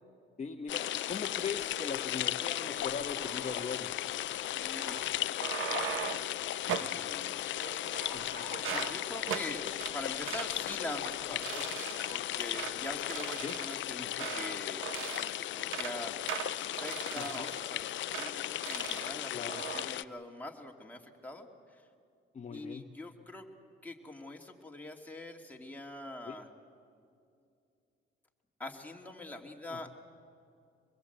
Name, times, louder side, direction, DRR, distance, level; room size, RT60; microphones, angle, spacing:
voice 1, 0.4-3.9 8.1-8.5 11.5-11.7 13.4-13.5 14.0-14.3 17.2-17.5 19.3-19.6 22.3-22.8 26.3-26.4 29.7-29.9, left 5 dB, 35° left, 4 dB, 1.2 m, -40 dB
sound 1, 0.7-20.0, left 13 dB, 70° left, 0.5 m, -36 dB
Dog, 1.3-1.5 1.9-3.8 4.7-5.1 7.0-7.2 7.9-11.2 11.5-11.6 12.1-12.2 12.9-13.3 13.7-13.9, right 1 dB, 60° right, 6.9 m, -49 dB
voice 2, 4.5-5.1 6.8-7.5 8.7-11.4 12.1-21.9 22.5-23.4 23.8-26.5 28.6-29.9, left 1 dB, 10° left, 1 dB, 2.6 m, -44 dB
sound 2, 5.2-6.3 6.7-7.0 7.6-8.2 8.5-8.9 9.3-9.5 9.8-9.9 10.3-10.5 10.9-11.1 11.4-12.2 12.5-12.8 13.1-14.6 14.8-15.3 15.6-15.9 16.3-17.7 18.1-18.3 18.6-19.1 19.5-19.8, right 9 dB, 85° right, 1.2 m, -39 dB
24.5 x 21.5 x 8.1 m, 2.5 s
cardioid pair, 90°, 20 cm